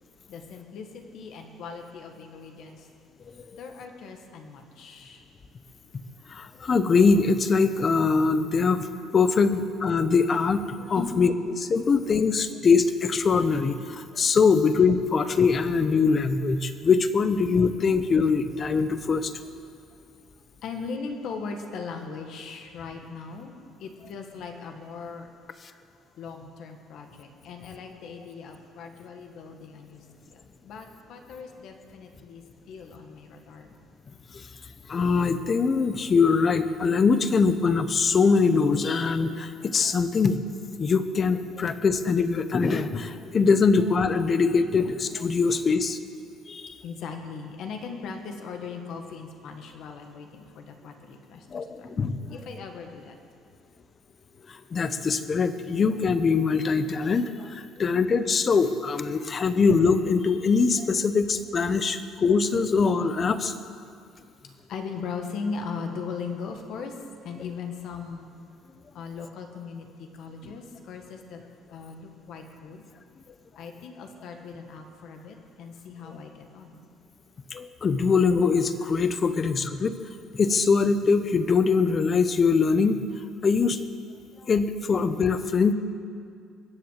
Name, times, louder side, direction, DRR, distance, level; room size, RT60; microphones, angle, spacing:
voice 1, 0.3-2.9 3.5-5.2 10.9-11.1 20.6-25.3 26.2-30.4 30.6-33.7 46.8-51.9 52.3-53.2 64.7-66.9 67.2-68.3 68.9-71.4 71.7-72.8 73.5-76.8, left 5 dB, 55° left, 4 dB, 1.6 m, -39 dB
voice 2, 6.3-8.9 9.1-11.3 11.6-19.3 34.3-34.5 34.9-40.4 40.8-46.0 46.5-46.8 51.5-52.4 54.5-63.5 77.5-80.0 80.4-83.1 83.4-83.8 84.5-85.7, left 5 dB, 25° left, 11 dB, 0.8 m, -23 dB
22.5 x 7.8 x 7.4 m, 2.3 s
cardioid pair, 155°, 0 cm